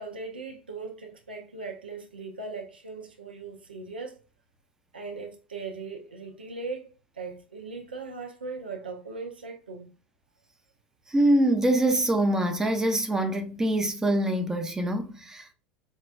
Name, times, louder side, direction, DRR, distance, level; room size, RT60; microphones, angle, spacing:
voice 1, 0.0-4.2 4.9-6.9 7.1-9.9, right 4 dB, 85° right, 0.5 m, -39 dB
voice 2, 11.1-15.5, right 1 dB, 10° right, 0.6 m, -24 dB
4.4 x 2.2 x 2.3 m
figure-of-eight pair, 75°, 5 cm